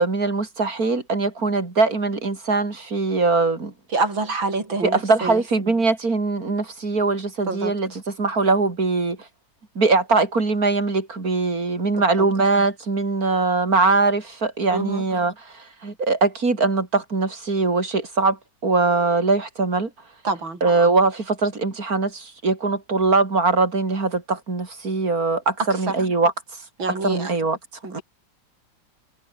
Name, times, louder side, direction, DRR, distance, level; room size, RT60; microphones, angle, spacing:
voice 1, 0.0-3.7 4.8-9.2 9.8-19.9 20.6-26.3 27.0-27.6 27.9-28.0, right 3 dB, 50° right, 3.9 m, -21 dB
voice 2, 3.9-5.4 7.5-8.0 11.9-12.3 14.7-15.1 20.2-20.6 25.7-25.9 26.8-27.3 27.8-28.0, right 3 dB, 90° right, 5.7 m, -27 dB
omnidirectional pair, 2.1 m